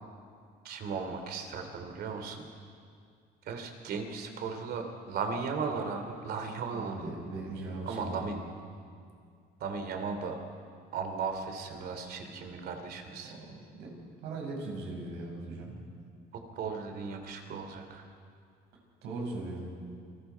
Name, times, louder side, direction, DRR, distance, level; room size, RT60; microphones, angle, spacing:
voice 1, 0.6-2.5 3.5-7.1 7.9-8.4 9.6-10.4 10.9-13.3 16.5-18.0, right 5 dB, 70° right, 6 dB, 2.9 m, -36 dB
voice 2, 6.7-8.3 13.2-15.7 19.0-19.7, right 2 dB, 90° right, -1 dB, 5.9 m, -39 dB
28.5 x 20.5 x 4.6 m, 2.3 s
cardioid pair, 110°, 17 cm